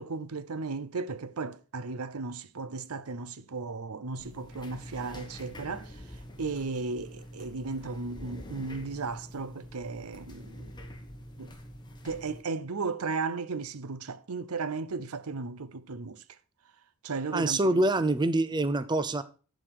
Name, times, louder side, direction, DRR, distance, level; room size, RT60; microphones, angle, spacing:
voice 1, 0.0-5.9 6.4-10.7 11.4-11.5 12.0-16.2 17.0-17.8, right 4 dB, 80° right, 0.7 m, -35 dB
sound 1, 4.2-12.4, equal, 20° left, 1.3 m, -46 dB
voice 2, 17.3-19.2, right 2 dB, 20° right, 0.5 m, -25 dB
11.0 x 5.1 x 6.1 m
head